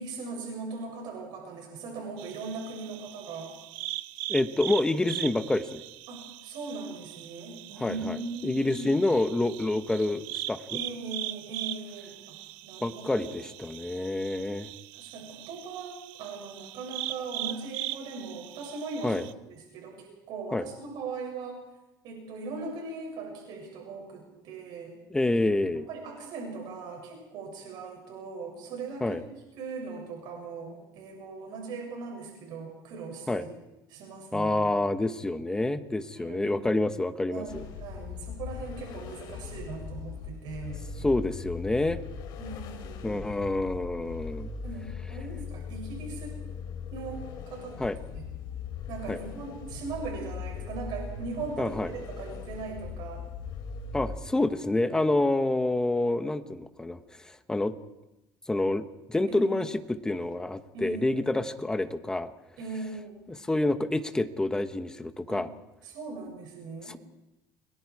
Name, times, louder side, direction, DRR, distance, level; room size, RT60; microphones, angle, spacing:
voice 1, 0.0-3.5 6.1-9.0 10.7-12.4 12.6-13.3 14.9-19.2 19.5-21.6 22.0-24.9 25.7-29.2 29.6-33.5 33.9-34.6 36.1-36.8 37.3-40.8 42.4-43.2 44.6-46.4 46.9-47.8 48.1-48.2 48.9-53.3 59.3-59.6 60.7-61.2 62.6-63.3 65.3-65.4 65.8-67.0, right 4 dB, 60° right, 1 dB, 7.1 m, -39 dB
Crickets Close and Distant Night, 2.2-19.3, right 16 dB, 75° right, 0.8 m, -40 dB
voice 2, 4.3-5.8 7.8-8.2 8.4-10.8 12.8-14.7 19.0-19.2 20.5-20.6 25.1-25.9 29.0-29.2 33.3-33.4 34.3-37.6 41.0-42.0 43.0-44.5 47.8-48.0 49.1-49.2 51.6-51.9 53.9-57.0 57.2-57.7 58.5-62.3 63.3-65.5 66.9-67.0, left 2 dB, 10° left, 9 dB, 1.1 m, -28 dB
sound 1, 37.5-54.2, left 6 dB, 55° left, 3.6 m, -39 dB
30.0 x 22.5 x 4.9 m, 0.95 s
cardioid pair, 145°, 9 cm